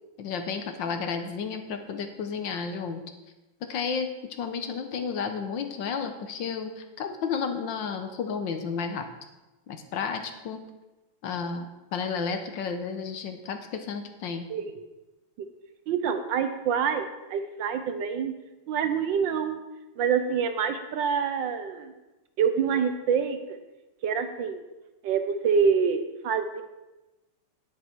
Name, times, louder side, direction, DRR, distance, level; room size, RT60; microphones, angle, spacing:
voice 1, 0.2-3.0 3.6-9.1 9.7-10.6 11.2-14.5, left 5 dB, 65° left, 7 dB, 1.5 m, -32 dB
voice 2, 14.5-14.8 15.4-15.5 15.9-18.3 18.7-19.6 20.0-21.9 22.4-23.6 24.0-24.6 25.0-26.6, right 6 dB, 70° right, 8 dB, 1.3 m, -26 dB
10.0 x 9.2 x 4.5 m, 1.1 s
omnidirectional pair, 2.3 m